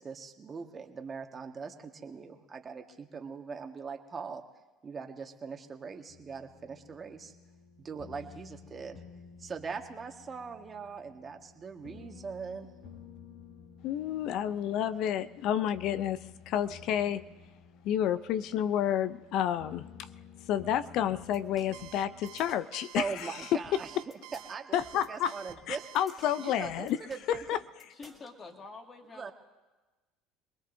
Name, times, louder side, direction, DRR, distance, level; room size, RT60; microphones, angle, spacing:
voice 1, 0.0-4.4 4.8-7.3 7.8-9.0 9.4-12.7 14.7-14.8 23.0-23.9 24.5-25.9 26.4-27.4 29.1-29.3, right 5 dB, 30° right, 5 dB, 1.6 m, -41 dB
sound 1, 6.1-22.5, left 6 dB, 75° left, 3.0 m, -53 dB
voice 2, 13.8-17.2 17.8-20.1 20.4-23.8 24.7-25.3 25.7-27.0 27.3-27.6, left 10 dB, 60° left, 14 dB, 0.5 m, -30 dB
sound 2, 21.1-28.3, equal, 15° left, 2.8 m, -55 dB
Alarm, 21.7-26.6, right 13 dB, 65° right, 0.8 m, -49 dB
voice 3, 27.9-29.3, left 3 dB, 35° left, 3 dB, 2.1 m, -47 dB
26.5 x 20.0 x 2.7 m, 1.2 s
hypercardioid pair, 75°, 0 cm